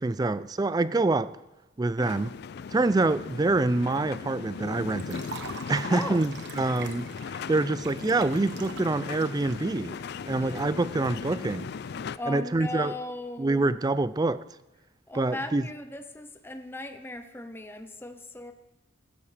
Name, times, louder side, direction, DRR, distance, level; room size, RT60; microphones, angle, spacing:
voice 1, 0.0-1.3 1.8-2.3 2.7-5.3 5.7-7.1 7.5-10.0 10.3-11.7 12.3-12.9 13.4-14.4 15.1-15.6, right 2 dB, 20° right, 0.3 m, -26 dB
sound 1, 2.0-12.2, left 6 dB, 55° left, 0.3 m, -38 dB
Liquid, 5.0-11.1, right 5 dB, 60° right, 1.1 m, -44 dB
voice 2, 5.9-6.2 10.4-10.6 12.2-13.8 15.1-18.5, left 2 dB, 10° left, 0.7 m, -37 dB
15.5 x 12.5 x 3.4 m
head